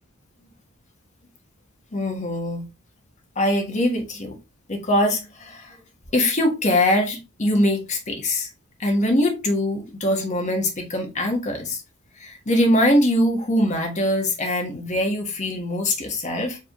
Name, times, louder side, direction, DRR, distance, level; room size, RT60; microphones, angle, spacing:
voice 1, 1.9-2.6 3.4-4.4 4.7-5.8 6.1-8.5 8.8-11.8 12.2-16.6, left 1 dB, 35° left, 1.2 m, -22 dB
4.7 x 3.4 x 2.9 m
head